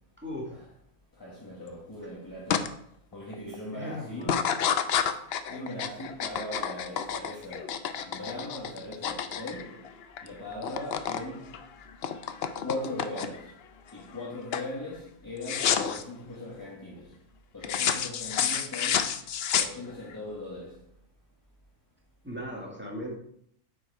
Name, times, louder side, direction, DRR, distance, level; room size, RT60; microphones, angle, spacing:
voice 1, 0.2-0.6 3.7-4.4 22.2-23.1, left 1 dB, 10° right, 1.6 m, -38 dB
voice 2, 1.2-2.8 3.1-4.5 5.5-7.7 8.1-9.8 10.2-11.5 12.6-13.5 13.9-17.1 17.5-19.1 19.6-20.8, left 1 dB, 15° left, 1.4 m, -39 dB
sound 1, 2.5-2.7 3.1-3.5 4.2-10.3 10.5-11.2 11.5-13.5 14.0-14.3 14.5-14.7 15.4-16.0 17.6-20.1, left 8 dB, 65° left, 0.6 m, -29 dB
8.0 x 4.8 x 4.6 m
omnidirectional pair, 1.6 m